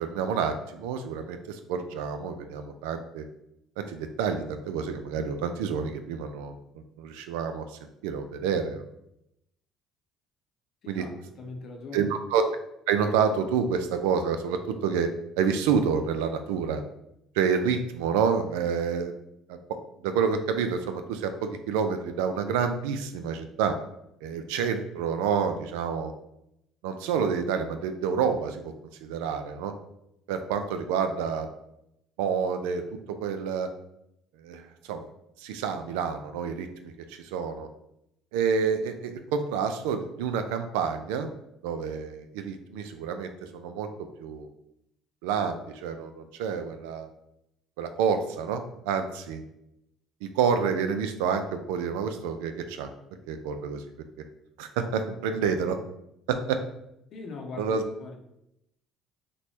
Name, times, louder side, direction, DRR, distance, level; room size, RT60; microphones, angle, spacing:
voice 1, 0.0-3.3 3.8-6.6 7.0-8.8 10.9-11.0 11.9-12.4 12.9-16.8 17.3-19.1 19.5-19.8 20.0-23.7 24.2-26.1 26.8-28.7 29.0-29.7 30.3-31.5 32.2-33.7 34.4-35.0 35.4-37.7 38.3-41.3 41.6-43.9 44.2-44.5 45.2-47.1 47.8-49.4 50.2-52.9 53.3-53.8 54.6-55.8 56.3-56.6 57.6-57.8, right 6 dB, 90° right, 7 dB, 0.3 m, -28 dB
voice 2, 11.4-12.1 57.1-58.1, left 3 dB, 55° left, 2 dB, 0.7 m, -40 dB
3.1 x 2.2 x 4.2 m, 0.81 s
supercardioid pair, 85°, 0 cm